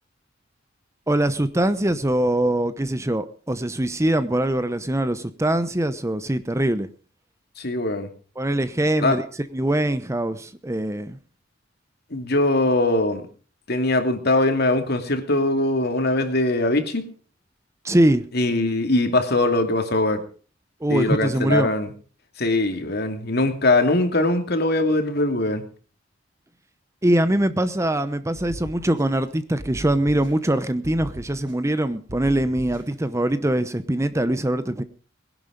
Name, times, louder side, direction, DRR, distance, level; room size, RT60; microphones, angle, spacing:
voice 1, 1.1-6.9 8.4-9.2 9.5-11.2 17.8-18.3 20.8-21.7 27.0-34.8, right 1 dB, 15° right, 0.8 m, -22 dB
voice 2, 7.6-8.1 9.0-9.2 12.1-13.2 13.7-17.0 18.3-20.2 20.9-21.9 22.4-25.6, left 2 dB, 55° left, 2.7 m, -21 dB
sound 1, 28.3-29.3 29.6-30.6 30.8-31.8 32.1-33.1, right 1 dB, 70° right, 4.6 m, -39 dB
20.0 x 11.0 x 5.2 m
head